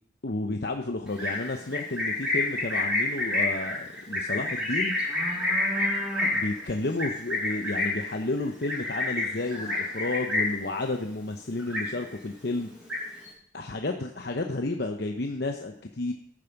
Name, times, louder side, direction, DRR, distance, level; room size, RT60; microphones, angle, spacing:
voice 1, 0.2-5.0 6.3-12.7 13.5-16.1, left 2 dB, 55° left, 4 dB, 0.8 m, -31 dB
Livestock farm animals working animals, 1.1-10.7 11.0-11.3 11.6-12.3 12.6-13.3, left 2 dB, 5° right, 3.5 m, -28 dB
14.5 x 8.8 x 5.9 m, 0.70 s
head